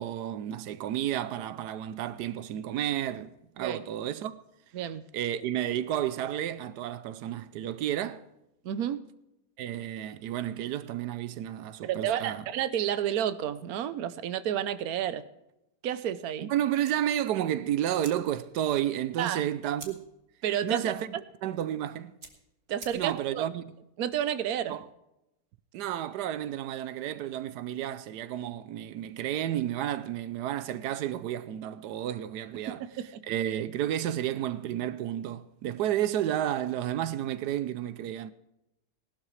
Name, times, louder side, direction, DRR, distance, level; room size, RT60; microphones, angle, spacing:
voice 1, 0.0-3.3 3.6-4.4 5.1-8.2 9.6-12.4 16.4-20.0 20.6-21.1 21.4-22.1 22.9-23.8 24.7-24.8 25.7-32.8 33.2-38.3, right 11 dB, 90° right, 1.2 m, -31 dB
voice 2, 8.6-9.0 11.8-15.2 15.8-16.5 19.2-19.4 20.4-20.9 22.7-23.5 24.0-24.7 32.7-33.2, right 10 dB, 70° right, 1.2 m, -31 dB
sound 1, 16.8-23.4, right 4 dB, 45° right, 2.0 m, -52 dB
18.5 x 12.0 x 3.2 m
omnidirectional pair, 1.7 m